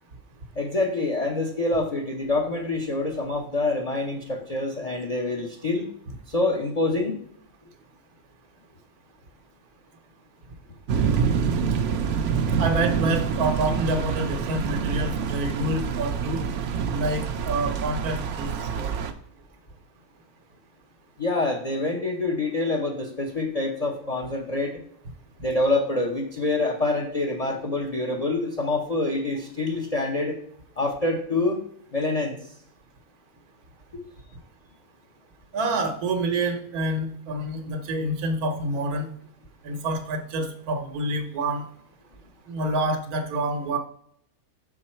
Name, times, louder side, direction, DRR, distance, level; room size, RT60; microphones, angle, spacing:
voice 1, 0.6-5.9 6.3-7.2 21.2-24.8 25.4-30.4 30.8-31.6 31.9-32.4, left 2 dB, 35° left, 1 dB, 0.7 m, -26 dB
sound 1, 10.9-19.1, right 6 dB, 65° right, 0.9 m, -26 dB
voice 2, 12.6-16.4 16.9-18.5 18.8-18.9 35.5-39.1 39.6-41.6 42.5-43.8, right 2 dB, 80° right, 7 dB, 1.4 m, -27 dB
6.4 x 4.7 x 4.3 m, 0.65 s
omnidirectional pair, 1.6 m